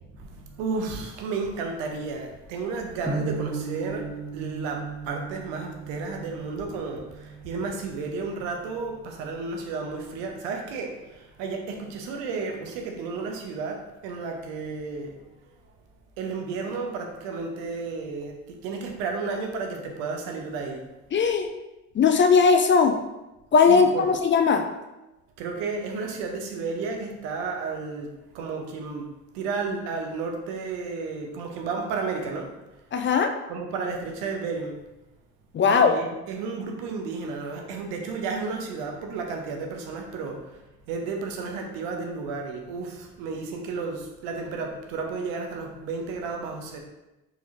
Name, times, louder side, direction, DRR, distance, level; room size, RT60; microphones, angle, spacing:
voice 1, 0.0-15.2 16.2-20.9 23.7-24.1 25.4-29.1 29.3-32.5 33.5-34.8 35.6-40.6 40.9-46.8, right 4 dB, 65° right, 2 dB, 0.9 m, -32 dB
sound 1, 3.1-9.1, right 4 dB, 5° left, 1.1 m, -36 dB
voice 2, 21.1-21.5 21.9-22.9 23.5-24.6 32.9-33.3 35.5-35.9, left 5 dB, 25° left, 6 dB, 0.4 m, -19 dB
4.4 x 4.0 x 2.6 m, 1.0 s
figure-of-eight pair, 50°, 46 cm